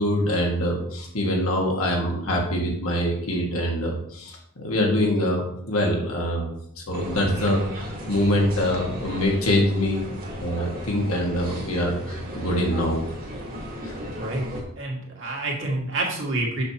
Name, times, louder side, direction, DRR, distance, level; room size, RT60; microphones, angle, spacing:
voice 1, 0.0-6.5 6.8-10.0 10.4-13.0 13.8-13.9, left 1 dB, 75° left, 0 dB, 1.7 m, -24 dB
sound 1, 6.9-14.6, equal, 40° right, 1.6 m, -35 dB
voice 2, 14.2-16.6, right 2 dB, 65° right, -2 dB, 1.9 m, -28 dB
6.5 x 6.4 x 2.9 m, 0.71 s
head